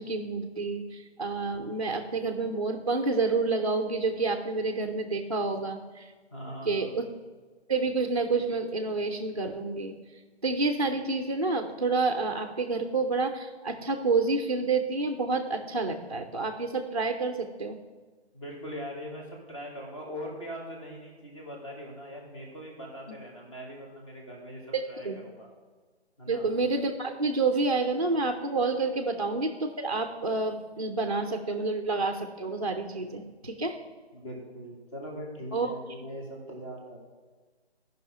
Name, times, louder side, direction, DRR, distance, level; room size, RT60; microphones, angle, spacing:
voice 1, 0.0-6.1 6.6-7.0 7.7-9.9 10.4-17.8 24.7-25.2 26.3-33.8 35.5-35.7, right 3 dB, 35° right, 4 dB, 0.5 m, -29 dB
voice 2, 6.3-7.0 18.3-25.5 26.2-26.5 34.1-37.0, equal, 30° left, -1 dB, 1.9 m, -41 dB
12.5 x 5.5 x 4.8 m, 1.4 s
hypercardioid pair, 170°, 33 cm